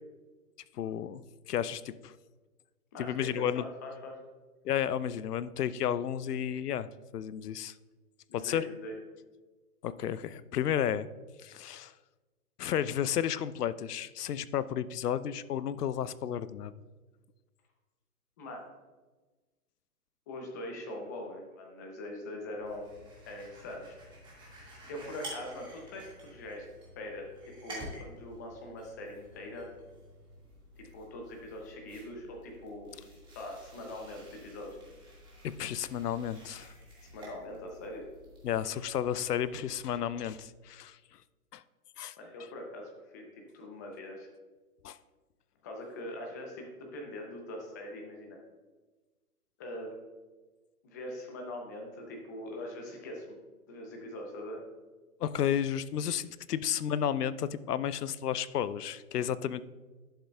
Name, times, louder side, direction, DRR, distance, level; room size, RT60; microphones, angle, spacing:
voice 1, 0.7-1.2 1.5-2.1 3.0-3.6 4.6-6.9 7.1-7.7 8.3-8.6 9.8-11.1 11.4-11.9 12.6-16.7 35.4-36.7 38.4-41.0 41.5-41.6 42.0-42.1 44.8-45.0 55.2-59.6, left 9 dB, 85° left, 16 dB, 0.6 m, -32 dB
voice 2, 2.9-4.2 8.3-8.9 18.4-18.7 20.3-22.9 23.3-24.0 24.8-26.7 27.0-27.3 27.6-29.7 30.9-32.9 33.3-34.8 37.0-38.0 42.2-43.3 43.5-44.3 45.6-48.4 49.6-50.0 50.8-53.4 53.7-54.6, left 1 dB, 15° left, 1 dB, 0.5 m, -42 dB
sound 1, 22.6-40.5, equal, 10° right, 1.7 m, -51 dB
11.5 x 6.7 x 2.3 m, 1.3 s
hypercardioid pair, 140°, 46 cm